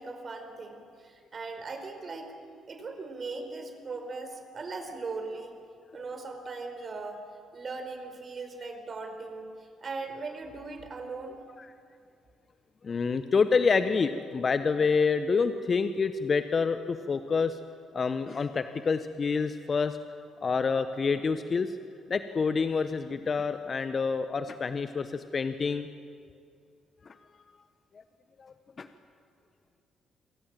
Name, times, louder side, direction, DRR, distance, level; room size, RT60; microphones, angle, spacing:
voice 1, 0.0-2.4 2.7-5.5 5.9-7.2 7.5-11.4, right 3 dB, 45° right, 6 dB, 4.6 m, -39 dB
voice 2, 12.8-17.6 17.9-20.0 20.4-21.8 22.1-25.9 27.0-27.2 28.4-28.9, left 5 dB, 45° left, 10 dB, 1.1 m, -27 dB
29.0 x 23.0 x 7.7 m, 2.3 s
hypercardioid pair, 45°, 0 cm